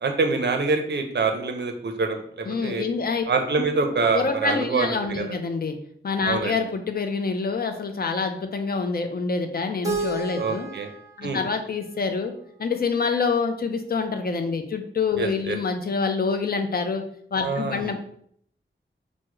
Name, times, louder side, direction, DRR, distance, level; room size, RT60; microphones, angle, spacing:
voice 1, 0.0-2.8 3.3-5.2 6.2-6.5 10.4-10.9 11.2-11.4 15.2-15.6 17.4-18.0, right 4 dB, 60° right, 5 dB, 0.5 m, -25 dB
voice 2, 2.5-3.2 4.1-5.8 6.0-10.7 11.2-12.3 12.6-17.0 17.3-18.0, left 4 dB, 50° left, 6 dB, 0.4 m, -26 dB
Keyboard (musical), 9.8-12.8, right 2 dB, 15° right, 0.7 m, -33 dB
3.4 x 2.0 x 3.0 m, 0.64 s
wide cardioid pair, 65°, 20 cm